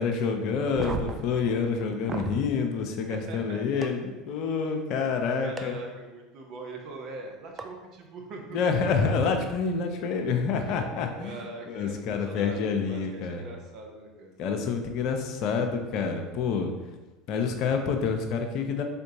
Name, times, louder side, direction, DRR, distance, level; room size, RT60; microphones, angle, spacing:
voice 1, 0.0-5.8 8.5-13.4 14.4-16.7 17.3-18.8, left 5 dB, 55° left, 5 dB, 0.5 m, -28 dB
sound 1, 0.6-2.4 3.8-3.9 5.6-5.7 7.6-7.7 9.1-9.2, right 4 dB, 25° right, 0.4 m, -35 dB
voice 2, 3.1-3.6 4.6-4.7 5.4-8.7 10.6-10.9 11.2-14.3, right 2 dB, 50° right, 1 dB, 0.9 m, -42 dB
4.3 x 3.8 x 2.7 m, 1.2 s
figure-of-eight pair, 70°, 0 cm